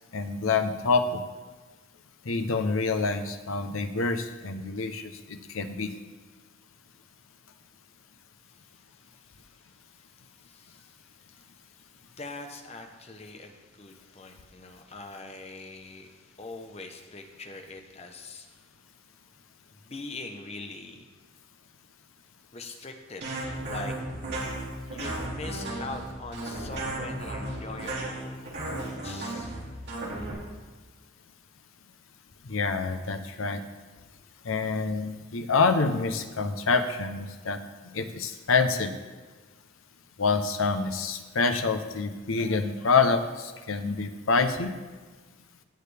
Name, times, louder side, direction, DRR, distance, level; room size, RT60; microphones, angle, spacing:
voice 1, 0.1-1.2 2.2-5.9 32.5-33.6 34.4-37.6 37.9-38.9 40.2-44.7, left 4 dB, 90° left, 8 dB, 0.8 m, -27 dB
voice 2, 10.4-11.0 12.0-18.5 19.8-21.0 22.5-23.3 23.6-24.0 24.9-29.6, left 2 dB, 30° left, 5 dB, 0.9 m, -42 dB
sound 1, 23.2-30.3, right 1 dB, 55° right, 2.7 m, -34 dB
16.5 x 6.6 x 3.4 m, 1.4 s
head